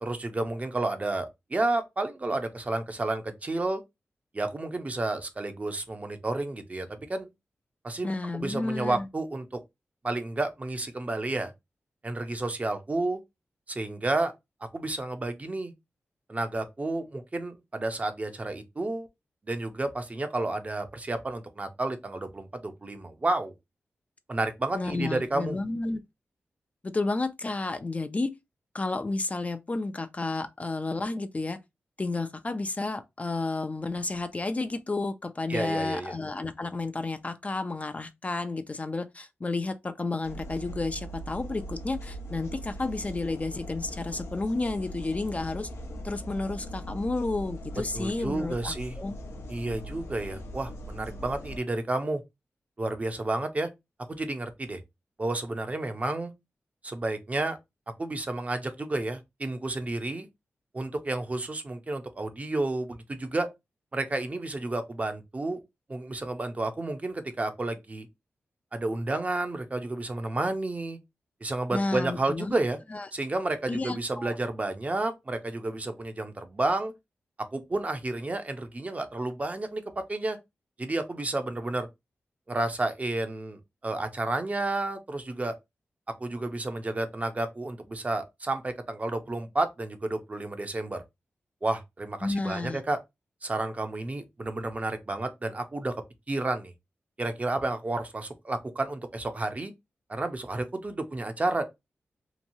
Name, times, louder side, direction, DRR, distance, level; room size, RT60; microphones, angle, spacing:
voice 1, 0.0-3.8 4.3-7.3 7.8-9.6 10.0-11.5 12.0-13.2 13.7-14.3 14.7-15.7 16.3-19.1 19.5-23.5 24.3-25.6 35.5-36.1 47.9-49.0 49.5-52.2 52.8-53.7 54.1-54.8 55.2-56.3 56.8-57.6 58.0-60.3 60.7-63.5 63.9-65.6 65.9-68.1 68.7-71.0 71.4-72.8 73.1-76.9 77.5-79.8 80.1-80.4 80.8-81.9 82.5-85.5 86.2-91.0 91.6-93.0 93.4-96.0 96.3-96.7 97.2-99.7 100.1-101.6, right 2 dB, 30° right, 0.6 m, -31 dB
voice 2, 8.0-9.1 24.7-26.0 26.8-28.3 28.7-31.6 32.0-45.7 46.0-49.2 71.7-72.5 72.9-73.1 73.7-74.4 92.2-92.8, left 3 dB, 30° left, 0.3 m, -31 dB
sound 1, 40.2-51.6, equal, 75° left, 0.6 m, -40 dB
2.9 x 2.2 x 2.6 m
cardioid pair, 65°, 5 cm